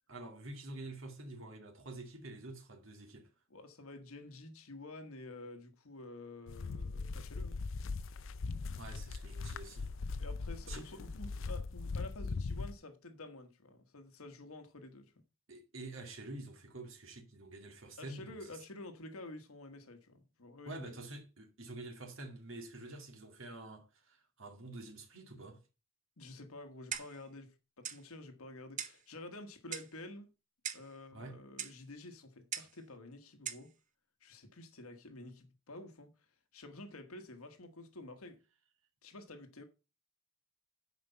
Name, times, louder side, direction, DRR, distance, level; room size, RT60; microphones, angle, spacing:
voice 1, 0.1-3.3 8.8-9.9 10.6-10.9 15.5-18.6 20.7-25.6 31.1-31.4, right 2 dB, 65° right, 2.4 m, -48 dB
voice 2, 3.5-7.6 10.2-15.1 18.0-20.9 26.2-30.3 30.7-33.7 34.2-36.1 36.5-38.4 39.0-39.6, left 2 dB, 85° left, 1.4 m, -50 dB
sound 1, 6.5-12.7, left 4 dB, 65° left, 0.5 m, -40 dB
Clock, 26.9-27.3 27.8-28.0 28.8-29.0 29.7-30.0 30.6-30.9 31.6-31.8 32.5-32.8 33.5-33.7, right 8 dB, 35° right, 0.8 m, -41 dB
9.5 x 5.2 x 5.5 m
head